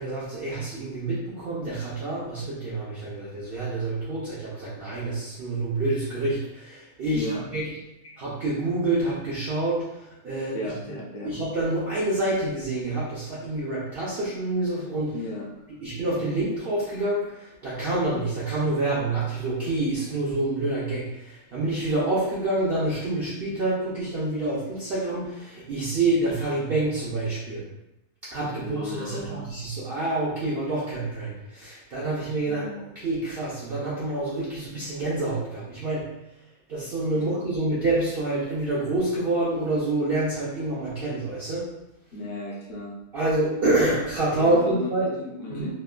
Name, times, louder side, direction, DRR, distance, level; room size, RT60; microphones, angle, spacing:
voice 1, 0.0-7.7 8.2-10.6 11.2-15.2 15.8-27.6 28.3-32.6 33.0-36.1 36.7-41.7 43.1-45.1 45.5-45.7, right 2 dB, 65° right, -7 dB, 0.5 m, -27 dB
voice 2, 10.5-11.3 15.1-15.5 28.6-29.5 32.5-32.8 37.1-37.4 42.1-43.0 44.4-45.7, left 2 dB, 55° left, -3 dB, 0.6 m, -35 dB
3.0 x 2.1 x 2.3 m, 0.90 s
omnidirectional pair, 1.6 m